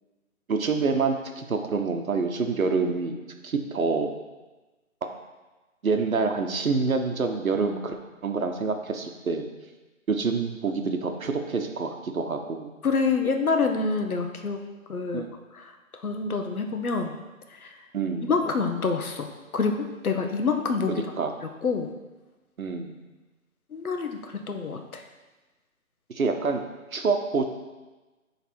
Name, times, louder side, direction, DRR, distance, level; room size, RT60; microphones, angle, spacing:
voice 1, 0.5-3.1 3.4-4.1 5.8-7.9 8.2-9.5 10.1-12.7 15.1-15.3 17.9-18.3 20.9-21.3 22.6-23.0 26.1-26.6 26.9-27.5, right 4 dB, 75° right, 5 dB, 0.9 m, -27 dB
voice 2, 12.8-14.6 14.9-15.3 15.5-17.2 17.5-17.8 18.3-21.0 21.4-21.9 23.7-25.0, left 4 dB, 85° left, 5 dB, 0.9 m, -27 dB
7.2 x 3.3 x 4.4 m, 1.2 s
figure-of-eight pair, 165°, 42 cm